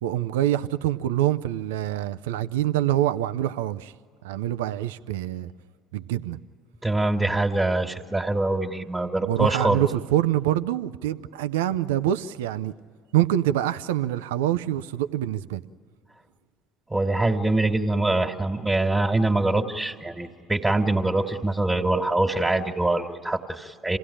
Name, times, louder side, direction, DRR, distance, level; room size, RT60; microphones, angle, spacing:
voice 1, 0.0-3.9 4.2-5.5 5.9-6.4 9.2-12.7 13.1-15.6, right 12 dB, 85° right, 0.5 m, -25 dB
voice 2, 6.8-9.8 16.9-24.0, right 2 dB, 15° right, 1.8 m, -24 dB
27.5 x 17.0 x 10.0 m
hypercardioid pair, 65°, 0 cm